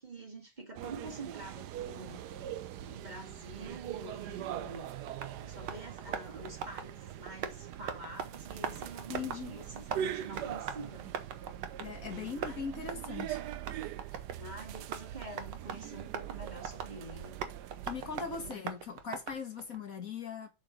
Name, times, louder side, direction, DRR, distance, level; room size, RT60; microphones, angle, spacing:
voice 1, 0.0-2.3 2.9-11.1 12.4-12.7 14.4-17.4 18.3-18.8, right 2 dB, 25° right, 2.3 m, -47 dB
sound 1, 0.7-18.5, right 11 dB, 75° right, 1.2 m, -42 dB
Tap, 4.3-19.8, right 7 dB, 90° right, 1.7 m, -43 dB
voice 2, 9.1-9.5 11.8-13.4 17.9-20.5, left 6 dB, 55° left, 1.6 m, -40 dB
7.7 x 4.6 x 6.3 m
omnidirectional pair, 1.9 m